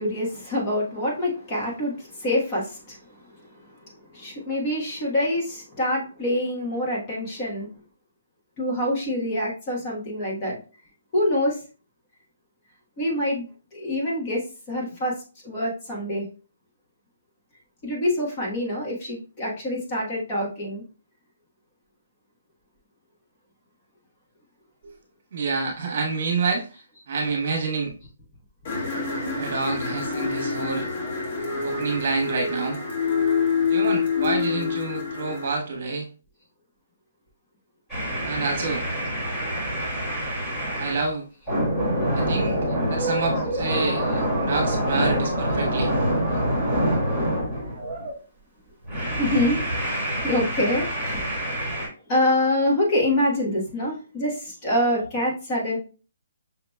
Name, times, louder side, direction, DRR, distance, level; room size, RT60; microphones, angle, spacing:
voice 1, 0.0-3.0 4.1-7.7 8.6-10.6 11.1-11.6 13.0-15.2 15.4-16.3 17.8-20.8 39.4-39.5 41.6-42.6 43.3-43.5 44.0-44.2 49.2-49.6 50.2-51.7 52.1-55.8, left 1 dB, 25° left, -4 dB, 1.2 m, -26 dB
voice 2, 25.3-26.7 27.1-27.9 29.4-30.9 31.6-32.8 33.7-36.1 38.3-38.8 40.8-41.2 42.1-42.6 42.9-44.0 44.4-45.9, right 4 dB, 50° right, 1 dB, 1.2 m, -28 dB
sound 1, 28.6-35.5, left 5 dB, 40° left, 1.4 m, -26 dB
sound 2, 37.9-41.1 41.5-48.1 48.9-51.9, equal, 5° left, 1.9 m, -26 dB
5.7 x 2.9 x 2.3 m, 0.35 s
hypercardioid pair, 170°, 0 cm